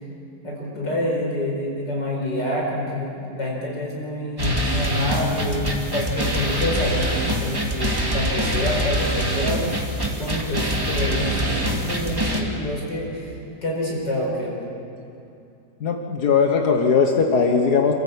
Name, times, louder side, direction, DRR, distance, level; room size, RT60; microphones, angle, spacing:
voice 1, 0.4-9.8 10.2-13.3 13.6-14.5, left 1 dB, 85° left, -2 dB, 5.5 m, -27 dB
sound 1, 4.4-12.4, equal, 15° right, 2.2 m, -24 dB
voice 2, 15.8-17.9, left 5 dB, 65° left, 3 dB, 1.8 m, -19 dB
28.0 x 14.0 x 8.2 m, 2.6 s
omnidirectional pair, 1.8 m